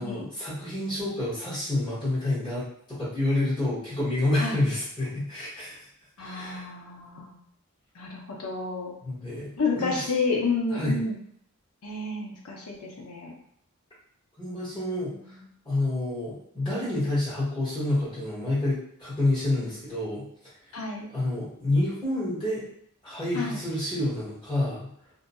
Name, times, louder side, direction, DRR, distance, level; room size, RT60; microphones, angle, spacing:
voice 1, 0.0-2.6 3.0-5.9 6.2-6.7 9.0-10.0 10.7-11.0 14.4-15.1 15.6-20.2 21.1-22.7 23.0-24.9, left 1 dB, 20° left, -10 dB, 1.2 m, -28 dB
voice 2, 6.2-7.4 7.9-8.9 9.6-11.2 11.8-13.3 14.7-15.5 20.7-21.1 23.3-23.6, left 3 dB, 80° left, 0 dB, 0.7 m, -30 dB
2.7 x 2.2 x 2.6 m, 0.67 s
head